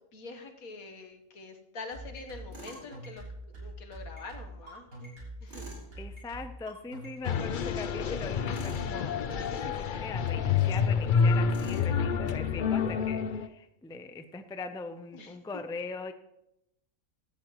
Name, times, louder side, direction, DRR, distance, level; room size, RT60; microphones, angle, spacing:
voice 1, 0.1-3.2 3.5-5.6 15.1-15.4, left 3 dB, 80° left, 5 dB, 1.8 m, -45 dB
sound 1, 1.9-7.2, right 2 dB, 75° right, 7.0 m, -44 dB
Tools, 2.5-2.9 5.5-5.9 8.5-8.9 11.5-11.9, right 2 dB, 45° right, 4.1 m, -46 dB
voice 2, 6.0-16.1, left 3 dB, 5° left, 8 dB, 0.4 m, -41 dB
sound 2, 7.3-13.5, left 6 dB, 50° left, 0.6 m, -28 dB
16.5 x 12.5 x 3.1 m, 0.84 s
omnidirectional pair, 1.5 m